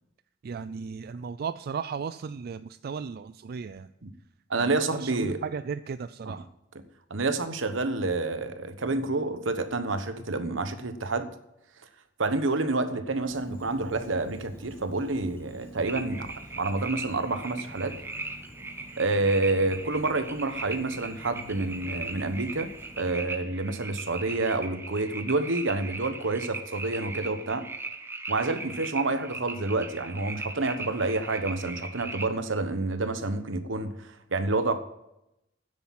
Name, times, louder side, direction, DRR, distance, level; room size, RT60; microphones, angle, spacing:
voice 1, 0.4-3.9 4.5-6.5, right 6 dB, 50° right, 13 dB, 0.3 m, -35 dB
voice 2, 4.5-5.4 6.3-6.4 7.1-11.3 12.2-18.0 19.0-22.7 23.0-27.6 28.3-34.8, right 3 dB, 80° right, 10 dB, 1.1 m, -28 dB
Insect, 13.2-23.1, right 1 dB, 10° left, 1.3 m, -49 dB
sound 1, 15.9-32.3, right 3 dB, 15° right, 0.9 m, -39 dB
9.9 x 8.4 x 7.5 m, 0.86 s
head